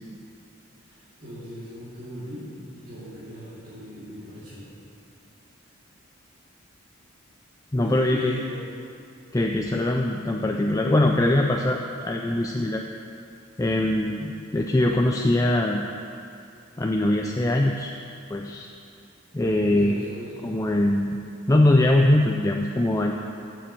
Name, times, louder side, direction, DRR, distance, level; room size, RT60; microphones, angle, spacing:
voice 1, 0.8-4.7 7.8-8.7 19.6-20.6, left 1 dB, 40° right, -12 dB, 2.5 m, -38 dB
voice 2, 7.7-8.4 9.3-12.8 13.6-15.8 16.8-17.9 18.3-18.7 19.3-20.0 20.4-21.2 21.5-23.1, left 1 dB, 15° left, 1 dB, 0.4 m, -22 dB
10.0 x 6.9 x 7.6 m, 2.6 s
head